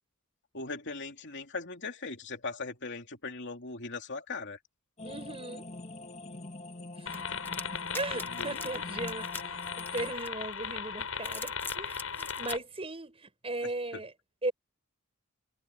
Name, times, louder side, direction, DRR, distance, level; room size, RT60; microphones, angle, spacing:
voice 1, 0.5-4.6 7.3-7.4 8.3-8.7 13.9-14.0, left 3 dB, 55° left, 3.0 m, -39 dB
sound 1, 5.0-10.1, left 2 dB, 35° left, 1.6 m, -45 dB
voice 2, 5.0-5.7 7.0-7.2 7.9-14.1 14.4-14.5, right 2 dB, 25° right, 5.8 m, -37 dB
sound 2, 7.1-12.6, left 6 dB, 75° left, 6.3 m, -37 dB
sound 3, 7.1-10.6 11.1-12.6, left 3 dB, 10° left, 0.9 m, -43 dB
head